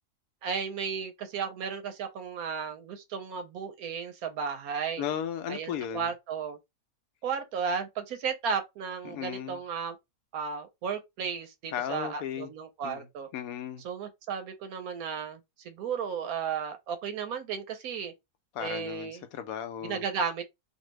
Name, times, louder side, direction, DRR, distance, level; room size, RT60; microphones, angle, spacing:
voice 1, 0.4-5.1 5.5-6.6 7.2-10.0 10.3-13.3 13.8-18.1 18.6-19.2 19.8-20.4, right 6 dB, 70° right, 1.0 m, -34 dB
voice 2, 5.0-6.1 9.0-9.6 11.7-12.5 12.8-13.1 13.3-13.8 18.5-20.1, left 9 dB, 70° left, 0.9 m, -35 dB
2.7 x 2.6 x 3.0 m
omnidirectional pair, 1.7 m